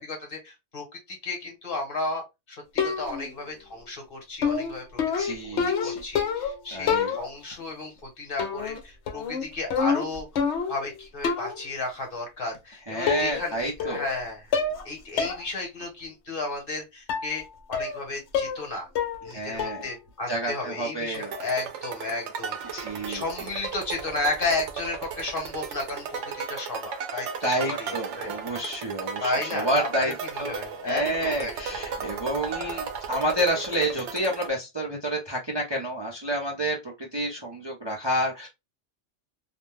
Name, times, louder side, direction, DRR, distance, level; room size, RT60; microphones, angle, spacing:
voice 1, 0.0-5.0 5.3-5.4 5.6-10.4 10.7-14.5 14.8-17.4 17.7-18.9 19.2-22.8 23.1-28.3 29.2-29.9 30.3-32.0, left 2 dB, 50° left, 2 dB, 1.2 m, -33 dB
sound 1, 2.8-3.3 4.4-6.6 6.9-7.5 8.4-8.8 9.1-10.9 11.2-11.6 12.6-12.7 13.1-13.5 13.8-14.2 14.5-14.9 15.2-15.4 15.8-15.9 17.1-17.3 17.7-18.0 18.3-18.7 19.0-19.3 19.6-19.9, left 6 dB, 75° left, 0.9 m, -27 dB
voice 2, 5.2-6.0 6.7-7.2 12.9-14.0 19.3-19.9 20.3-21.3 22.7-23.2 27.4-30.5 30.8-38.5, right 1 dB, 30° right, -2 dB, 0.6 m, -29 dB
sound 2, 21.1-34.5, right 6 dB, 85° right, 0.9 m, -36 dB
2.5 x 2.2 x 3.2 m, 0.22 s
omnidirectional pair, 1.2 m